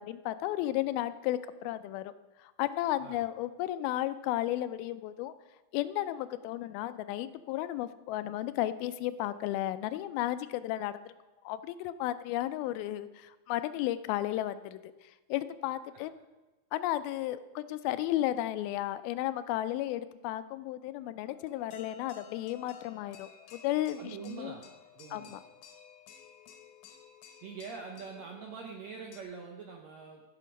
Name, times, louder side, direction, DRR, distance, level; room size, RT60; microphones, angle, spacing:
voice 1, 0.0-2.1 2.4-5.3 5.7-11.1 11.4-14.8 15.3-16.1 16.7-24.5 25.1-25.4, left 14 dB, 85° left, 13 dB, 2.4 m, -33 dB
sound 1, 21.2-29.2, left 8 dB, 70° left, 2.3 m, -54 dB
voice 2, 24.0-24.6 24.9-25.4 27.4-30.2, right 5 dB, 75° right, 2 dB, 1.6 m, -44 dB
15.5 x 6.7 x 5.2 m, 1.1 s
omnidirectional pair, 4.3 m